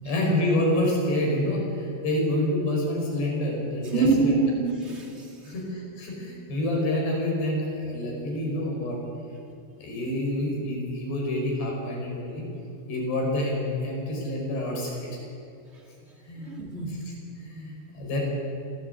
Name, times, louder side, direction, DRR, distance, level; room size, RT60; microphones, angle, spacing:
voice 1, 0.0-4.3 5.4-9.0 9.8-12.5 12.9-15.1 16.3-16.5 16.8-17.0 17.3-18.2, left 1 dB, 75° left, -1 dB, 8.0 m, -27 dB
voice 2, 3.9-5.5 16.4-17.1, right 4 dB, 25° right, 1 dB, 1.5 m, -25 dB
26.0 x 16.5 x 8.5 m, 2.6 s
omnidirectional pair, 4.9 m